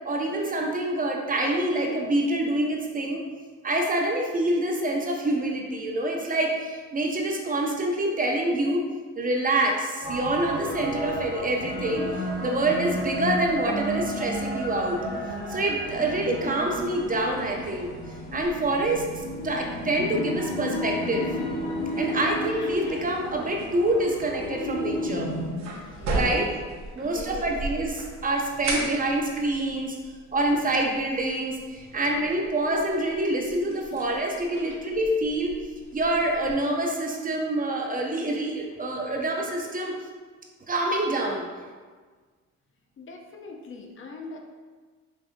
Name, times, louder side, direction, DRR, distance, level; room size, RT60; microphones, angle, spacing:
voice 1, 0.0-3.2 3.6-8.8 9.2-12.1 12.4-15.0 15.5-17.9 18.3-21.3 22.0-25.3 26.1-26.5 26.9-30.0 30.3-35.5 35.9-39.9 40.7-41.4, right 1 dB, 30° right, 0 dB, 0.5 m, -26 dB
sound 1, 10.0-25.5, left 1 dB, 70° left, 1.4 m, -32 dB
sound 2, 24.9-36.5, right 2 dB, 65° right, 0.8 m, -37 dB
voice 2, 25.7-26.5 27.0-27.5 38.7-39.2 43.0-44.4, left 3 dB, 40° left, 2 dB, 0.5 m, -43 dB
5.1 x 2.5 x 2.5 m, 1.5 s
cardioid pair, 90°, 30 cm